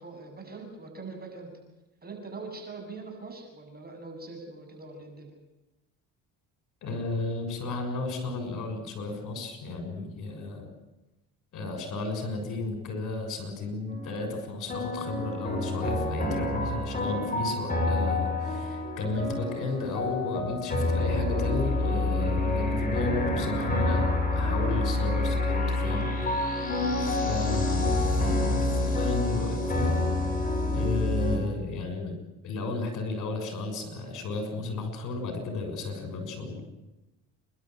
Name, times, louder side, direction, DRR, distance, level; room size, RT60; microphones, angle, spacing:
voice 1, 0.0-1.5 2.0-5.3 27.2-27.5, right 3 dB, 25° right, 3 dB, 7.6 m, -42 dB
voice 2, 6.8-10.7 11.5-26.1 27.0-29.9 30.7-32.2 32.4-36.6, left 3 dB, 60° left, 5 dB, 6.6 m, -33 dB
sound 1, 13.9-14.4 14.7-31.4, left 2 dB, 25° left, 7.1 m, -28 dB
28.5 x 12.0 x 9.3 m, 0.99 s
supercardioid pair, 90°, 34 cm